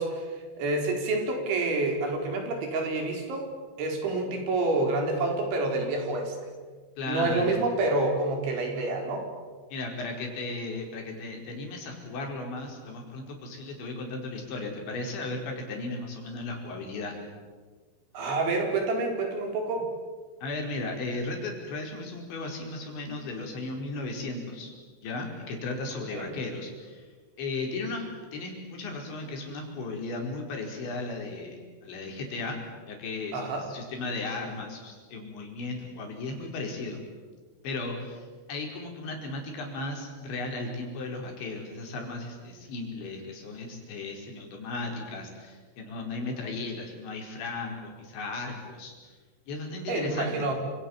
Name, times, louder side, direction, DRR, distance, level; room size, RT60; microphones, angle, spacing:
voice 1, 0.0-3.5 3.8-6.3 7.1-9.3 18.1-19.8 26.1-26.3 33.3-33.7 49.9-50.5, right 2 dB, 65° right, 2 dB, 7.0 m, -28 dB
voice 2, 7.0-7.6 9.7-17.2 20.4-24.7 25.0-27.1 27.4-32.6 32.9-37.0 37.6-49.1 49.5-50.5, left 3 dB, 60° left, 1 dB, 7.1 m, -35 dB
29.0 x 27.5 x 7.4 m, 1.5 s
omnidirectional pair, 5.9 m